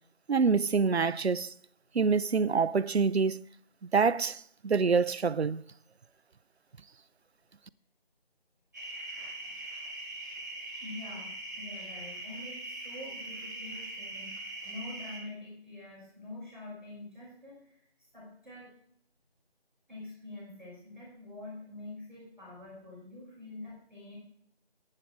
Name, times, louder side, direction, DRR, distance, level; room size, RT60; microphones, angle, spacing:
voice 1, 0.3-1.5 1.9-3.4 3.9-5.6, right 5 dB, 85° right, 0.6 m, -26 dB
sound 1, 8.7-15.2, right 2 dB, 15° right, 2.0 m, -41 dB
voice 2, 9.1-9.5 10.8-17.8 18.1-18.7 19.9-24.1, left 2 dB, ahead, 3.0 m, -46 dB
11.0 x 8.7 x 4.8 m
figure-of-eight pair, 175°, 31 cm